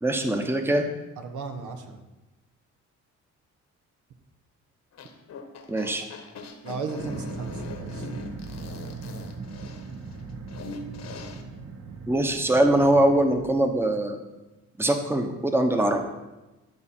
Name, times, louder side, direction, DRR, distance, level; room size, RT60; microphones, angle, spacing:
voice 1, 0.0-0.8 5.7-6.0 12.1-14.2 14.8-16.0, right 1 dB, 10° right, 5 dB, 1.0 m, -22 dB
voice 2, 1.2-2.0 6.6-8.1, right 4 dB, 75° right, 5 dB, 1.2 m, -36 dB
sound 1, 4.9-11.4, left 3 dB, 60° left, 1.3 m, -41 dB
sound 2, 7.0-13.5, right 4 dB, 55° right, 1.3 m, -39 dB
13.5 x 5.5 x 4.4 m, 1.1 s
cardioid pair, 90°, 30 cm